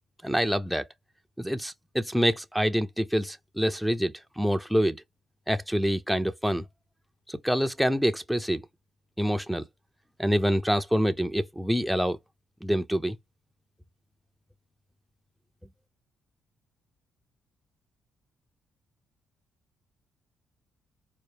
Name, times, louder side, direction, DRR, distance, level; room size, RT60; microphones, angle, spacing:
voice 1, 0.2-0.9 1.4-5.0 5.5-6.6 7.3-8.6 9.2-9.6 10.2-12.2 12.6-13.2, equal, ahead, 0.3 m, -26 dB
4.3 x 2.1 x 3.2 m
cardioid pair, 90°, 0 cm